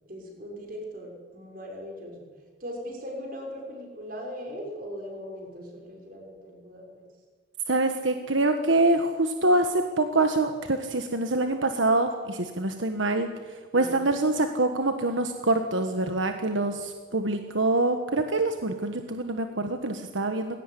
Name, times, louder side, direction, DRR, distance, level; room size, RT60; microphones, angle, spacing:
voice 1, 0.1-2.2 2.6-7.0 13.7-13.9, equal, 45° right, 1 dB, 6.1 m, -39 dB
voice 2, 7.7-13.3 13.7-20.6, right 2 dB, 80° right, 6 dB, 1.5 m, -25 dB
20.0 x 18.0 x 9.9 m, 1.5 s
head